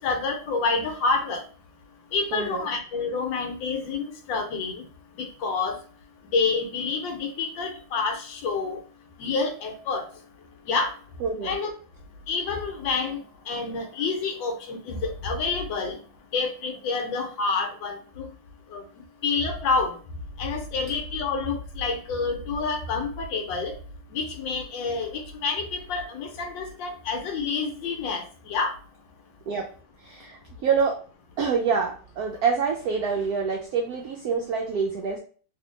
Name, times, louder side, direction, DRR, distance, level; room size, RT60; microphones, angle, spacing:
voice 1, 0.0-1.4 2.1-4.8 5.2-5.8 6.3-8.8 9.2-10.1 10.7-10.9 11.4-11.7 12.3-13.2 13.5-16.0 16.3-18.3 18.7-18.8 19.2-19.9 20.4-23.8 24.1-28.7, left 4 dB, 75° left, 5 dB, 1.3 m, -28 dB
voice 2, 2.3-2.6 11.2-11.6 29.5-29.6 30.0-30.9 31.4-35.2, right 5 dB, 80° right, 1 dB, 0.8 m, -26 dB
3.1 x 2.7 x 3.0 m, 0.41 s
omnidirectional pair, 2.1 m